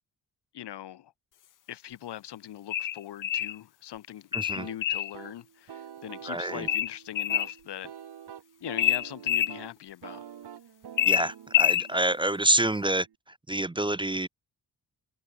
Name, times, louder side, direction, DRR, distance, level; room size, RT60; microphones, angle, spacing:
voice 1, 0.5-1.1 1.7-4.3 4.6-7.9 8.6-10.2, left 12 dB, 90° left, 1.0 m, -41 dB
sound 1, 2.7-3.6 4.3-5.1 6.7-7.5 8.8-9.5 11.0-11.9, left 11 dB, 55° left, 0.6 m, -25 dB
voice 2, 4.3-4.7 6.3-6.7 11.0-13.1 13.5-14.3, right 1 dB, 10° right, 0.6 m, -27 dB
sound 2, 4.6-13.2, right 9 dB, 75° right, 2.3 m, -47 dB
cardioid pair, 95°, 40 cm